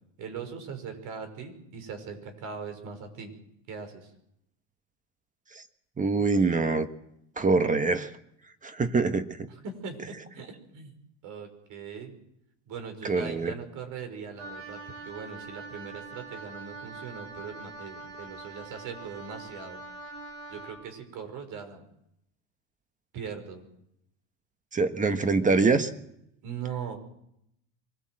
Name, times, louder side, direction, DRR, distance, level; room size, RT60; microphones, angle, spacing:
voice 1, 0.2-3.3 3.7-4.1 9.5-10.9 11.2-12.2 12.7-19.8 20.5-21.8 23.1-23.7 26.4-27.0, right 6 dB, 55° right, 7 dB, 5.6 m, -40 dB
voice 2, 6.0-6.9 7.4-8.1 8.6-9.5 13.0-13.5 24.7-25.9, right 4 dB, 20° right, 10 dB, 1.4 m, -24 dB
Wind instrument woodwind instrument, 14.4-20.8, right 3 dB, 85° right, 5.3 m, -43 dB
24.0 x 17.5 x 7.8 m, 0.77 s
supercardioid pair, 115°, 37 cm